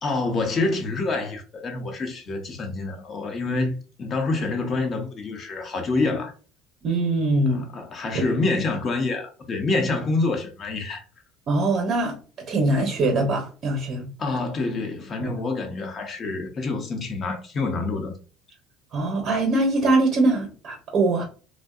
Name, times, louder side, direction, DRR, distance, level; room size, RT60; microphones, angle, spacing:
voice 1, 0.0-6.3 7.5-11.0 14.2-18.1, left 3 dB, 40° left, 0.8 m, -27 dB
voice 2, 6.8-7.6 8.1-8.2 11.5-12.2 12.5-14.1 15.2-15.3 18.9-21.2, right 2 dB, 50° right, 0.7 m, -22 dB
2.6 x 2.1 x 2.3 m
supercardioid pair, 90°, 0 cm